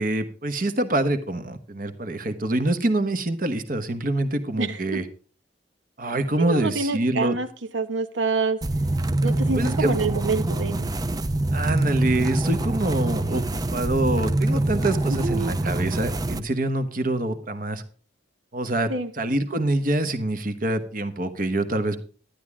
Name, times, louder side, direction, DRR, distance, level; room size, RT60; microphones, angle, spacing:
voice 1, 0.0-5.0 6.0-7.4 9.5-9.9 11.5-17.8 18.5-22.0, right 2 dB, 50° right, 1.1 m, -25 dB
voice 2, 4.6-5.0 6.4-7.5 7.7-8.6 9.2-10.9 15.1-15.5 18.9-19.1, right 4 dB, 85° right, 1.1 m, -27 dB
sound 1, 8.6-16.4, right 2 dB, 20° right, 0.5 m, -25 dB
12.0 x 9.8 x 3.6 m
head